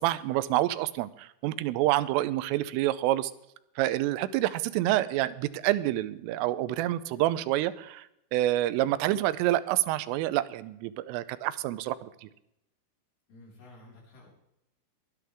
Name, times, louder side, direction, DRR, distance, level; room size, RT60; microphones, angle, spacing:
voice 1, 0.0-3.3 3.8-12.3, right 15 dB, 85° right, 15 dB, 3.2 m, -28 dB
voice 2, 13.3-14.3, left 2 dB, 55° left, -3 dB, 6.9 m, -52 dB
22.5 x 10.0 x 3.5 m, 0.80 s
omnidirectional pair, 5.7 m